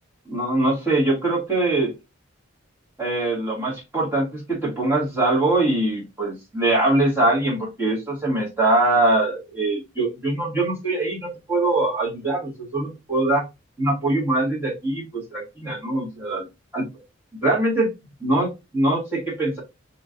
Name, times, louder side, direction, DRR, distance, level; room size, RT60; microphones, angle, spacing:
voice 1, 0.3-1.9 3.0-13.4 13.8-16.5 16.7-16.9 17.4-17.9 18.2-19.6, right 2 dB, 10° right, -6 dB, 1.9 m, -22 dB
4.8 x 3.2 x 2.6 m, 0.24 s
head